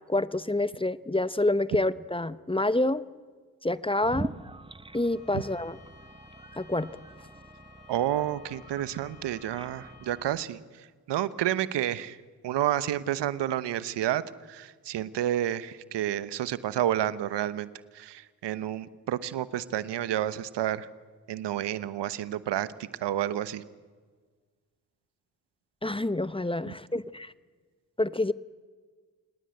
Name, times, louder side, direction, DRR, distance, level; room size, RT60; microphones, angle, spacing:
voice 1, 0.0-3.0 3.6-4.3 4.9-5.8 6.6-6.9 25.8-27.3 28.0-28.3, left 2 dB, 10° left, 15 dB, 0.9 m, -27 dB
sound 1, 4.0-10.4, right 2 dB, 10° right, 1.1 m, -43 dB
Bowed string instrument, 5.0-10.3, left 6 dB, 60° left, 3.2 m, -56 dB
voice 2, 7.9-12.2 12.4-14.2 14.5-17.7 17.9-20.9 21.3-22.7 23.0-23.6, right 12 dB, 70° right, 16 dB, 1.1 m, -30 dB
27.0 x 19.5 x 7.8 m, 1.5 s
hypercardioid pair, 40°, 43 cm